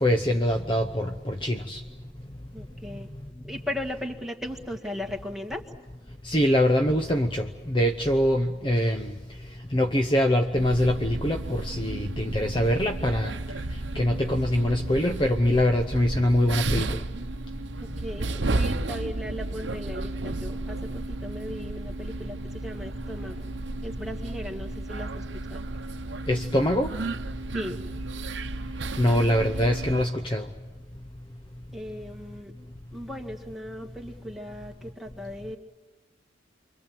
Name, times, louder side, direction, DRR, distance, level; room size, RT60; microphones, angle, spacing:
voice 1, 0.0-1.8 6.2-9.1 9.7-13.3 13.9-17.0 26.3-26.9 29.0-30.5, equal, 25° left, 5 dB, 0.9 m, -24 dB
voice 2, 2.5-3.1 3.4-5.6 17.8-23.5 23.8-25.1 25.5-25.6 27.5-27.8 31.7-32.5 32.9-35.6, left 1 dB, ahead, 1 dB, 2.0 m, -37 dB
sound 1, 10.5-30.0, right 2 dB, 70° right, 0.9 m, -33 dB
29.0 x 24.0 x 7.7 m, 1.2 s
head